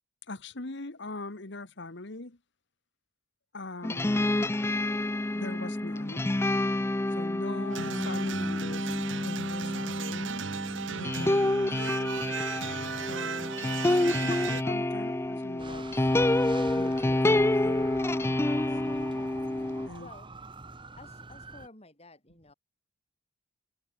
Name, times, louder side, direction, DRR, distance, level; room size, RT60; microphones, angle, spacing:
voice 1, 0.3-2.4 3.5-4.4 5.3-6.4 7.1-10.6 10.9-11.9 13.1-13.6 13.9-16.1 16.7-18.8 19.8-20.1, left 2 dB, 60° left, 1.6 m, -42 dB
sound 1, 3.8-19.9, left 1 dB, 10° left, 0.4 m, -28 dB
sound 2, 7.7-14.6, right 6 dB, 65° right, 1.0 m, -36 dB
sound 3, 15.6-21.7, right 3 dB, 25° right, 1.6 m, -46 dB
voice 2, 20.0-20.3 21.0-22.5, left 2 dB, 30° left, 7.5 m, -53 dB
head